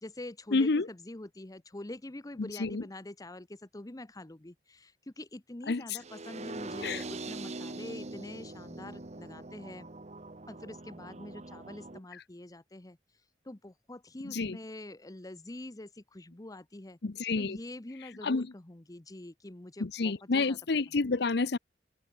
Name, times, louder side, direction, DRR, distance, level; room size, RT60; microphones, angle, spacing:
voice 1, 0.0-9.9 10.5-13.0 13.4-17.0 17.4-20.6, left 1 dB, 20° left, 0.9 m, -45 dB
voice 2, 0.5-0.9 2.4-2.8 5.7-5.8 6.8-7.0 14.2-14.6 17.0-17.6 18.2-18.5 19.8-21.6, left 3 dB, 65° left, 0.7 m, -29 dB
sound 1, 6.0-12.0, right 2 dB, 40° right, 1.2 m, -43 dB
head